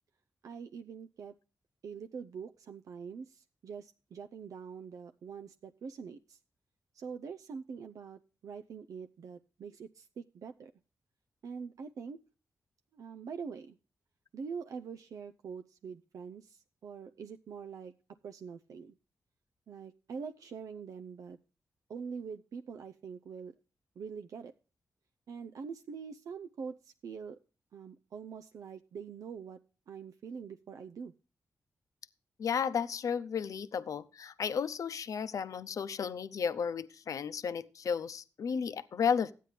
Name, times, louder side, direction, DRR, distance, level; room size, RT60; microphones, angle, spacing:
voice 1, 0.4-1.3 1.8-6.4 6.9-10.7 11.4-12.2 12.9-13.8 14.3-17.9 18.2-18.9 19.7-21.4 21.9-23.5 24.0-24.5 25.3-27.4 27.7-29.6 29.9-31.1, right 6 dB, 75° right, 8 dB, 0.5 m, -44 dB
voice 2, 32.4-39.3, left 7 dB, 70° left, 13 dB, 0.7 m, -33 dB
13.0 x 9.2 x 3.2 m, 0.34 s
cardioid pair, 80°, 6 cm